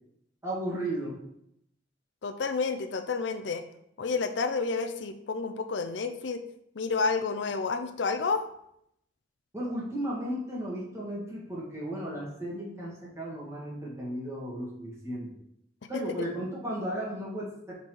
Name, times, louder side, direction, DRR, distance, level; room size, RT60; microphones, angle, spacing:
voice 1, 0.4-1.2 9.5-15.3 15.9-17.7, right 1 dB, 15° right, -5 dB, 1.9 m, -35 dB
voice 2, 2.2-3.6 4.0-6.4 6.7-8.5 15.9-16.3, left 4 dB, 70° left, 9 dB, 0.5 m, -30 dB
6.2 x 4.2 x 4.5 m, 0.75 s
head